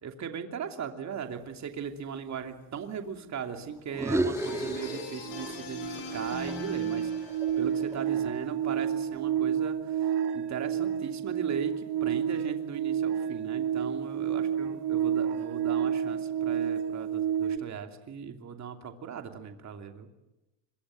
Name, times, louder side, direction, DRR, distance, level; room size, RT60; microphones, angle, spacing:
voice 1, 0.0-7.1 7.6-20.1, right 7 dB, 35° right, 5 dB, 2.9 m, -38 dB
sound 1, 3.9-5.6 5.9-8.2, right 1 dB, 5° right, 1.7 m, -34 dB
sound 2, 4.0-4.1 4.4-17.6, right 9 dB, 55° right, 2.2 m, -30 dB
sound 3, 4.3-8.0, left 5 dB, 60° left, 6.4 m, -42 dB
26.5 x 23.5 x 7.7 m, 0.97 s
cardioid pair, 125°, 47 cm